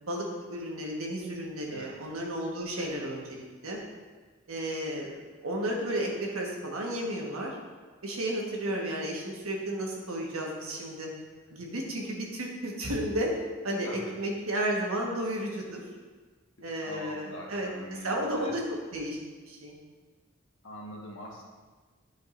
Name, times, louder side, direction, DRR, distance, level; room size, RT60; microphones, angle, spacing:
voice 1, 0.0-3.4 3.6-3.8 4.5-5.1 5.4-7.6 8.0-11.1 11.5-13.3 13.6-15.8 16.6-17.7 18.0-18.6 18.9-19.2 19.4-19.8, right 1 dB, 85° right, -1 dB, 1.4 m, -33 dB
voice 2, 13.8-14.2 16.8-18.6 20.6-21.4, equal, 65° left, -3 dB, 1.5 m, -42 dB
11.0 x 5.2 x 2.6 m, 1.4 s
head